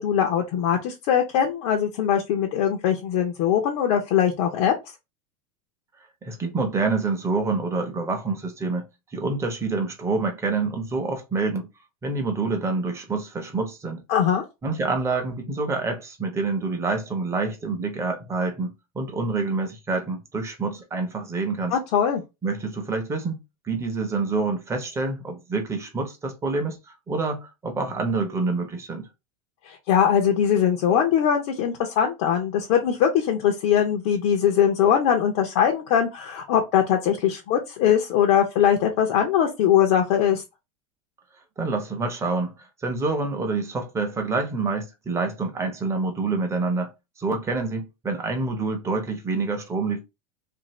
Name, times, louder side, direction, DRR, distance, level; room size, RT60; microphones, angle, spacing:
voice 1, 0.0-4.7 14.1-14.4 21.7-22.2 29.6-40.4, left 9 dB, 60° left, 0.6 m, -21 dB
voice 2, 6.2-11.7 12.0-14.0 14.6-21.8 22.4-23.4 23.7-26.8 27.1-29.1 41.6-46.9 47.2-50.0, right 3 dB, 15° right, 0.7 m, -27 dB
2.6 x 2.5 x 3.0 m
supercardioid pair, 140°, 18 cm